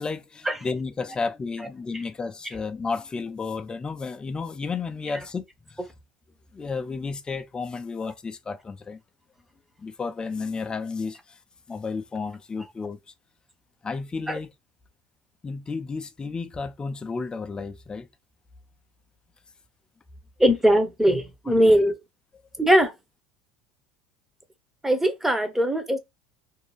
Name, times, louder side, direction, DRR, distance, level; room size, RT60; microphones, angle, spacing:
voice 1, 0.0-5.8 6.5-9.0 9.8-11.4 11.7-13.0 13.8-14.5 15.4-18.1 21.5-21.7, left 4 dB, 20° left, 0.4 m, -32 dB
voice 2, 20.4-22.0 22.6-22.9 24.8-26.0, equal, 5° right, 0.8 m, -20 dB
2.6 x 2.2 x 3.0 m
hypercardioid pair, 85°, 4 cm